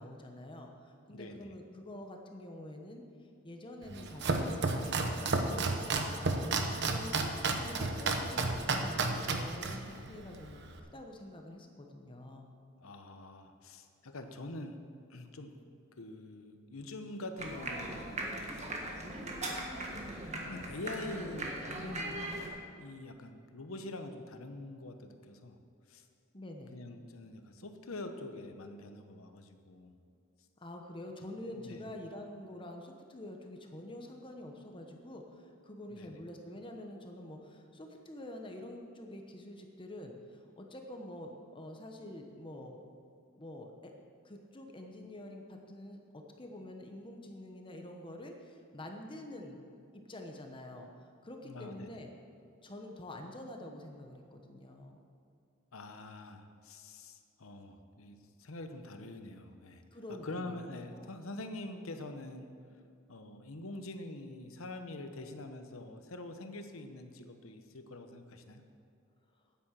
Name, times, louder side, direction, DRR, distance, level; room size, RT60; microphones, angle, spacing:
voice 1, 0.0-12.5 26.3-26.8 30.6-42.8 43.3-43.9 44.2-49.6 49.9-50.9 51.2-52.1 52.6-55.0 59.9-60.6 60.9-61.1, left 1 dB, 25° left, 3 dB, 1.0 m, -47 dB
voice 2, 1.1-1.5 12.8-14.8 15.1-15.7 16.0-18.7 19.1-20.2 20.5-22.4 22.7-25.6 25.9-26.1 26.7-29.9 31.5-31.9 35.9-36.2 51.4-52.0 55.7-59.8 60.2-62.5 63.1-68.6, left 2 dB, 80° left, 7 dB, 1.0 m, -45 dB
Domestic sounds home sounds, 3.8-10.8, right 3 dB, 55° right, 0.9 m, -32 dB
sound 1, 17.4-22.5, right 1 dB, 35° right, 1.5 m, -39 dB
9.4 x 8.7 x 7.4 m, 2.4 s
head